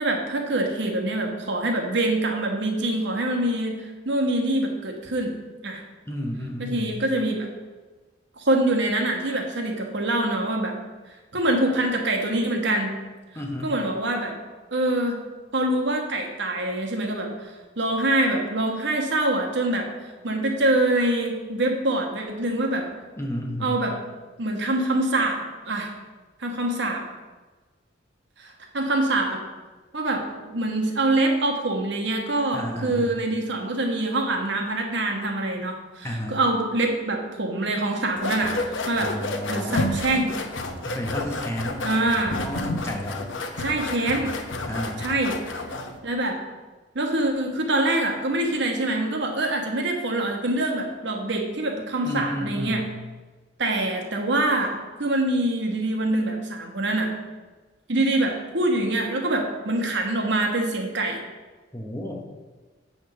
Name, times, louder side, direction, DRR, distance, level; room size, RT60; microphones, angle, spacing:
voice 1, 0.0-5.3 5.6-5.8 6.6-7.5 8.4-10.7 11.3-12.9 13.6-14.3 14.7-15.2 15.5-22.9 23.6-24.0 24.4-25.9 26.4-27.0 28.4-29.4 29.9-38.5 38.9-39.1 39.5-40.4 41.8-42.4 43.6-44.4 45.0-45.4 46.0-46.4 46.9-52.8 53.6-57.1 57.9-61.2, right 1 dB, 65° right, 2 dB, 1.2 m, -25 dB
voice 2, 6.1-7.0 13.3-13.7 23.2-23.7 32.5-33.2 36.0-36.4 39.0-40.0 40.8-41.8 42.4-43.3 44.6-45.0 52.0-52.9 61.7-62.2, left 1 dB, 15° left, 1 dB, 0.9 m, -31 dB
sound 1, 38.2-46.0, left 2 dB, 80° left, 0.8 m, -30 dB
8.3 x 3.5 x 6.6 m, 1.3 s
head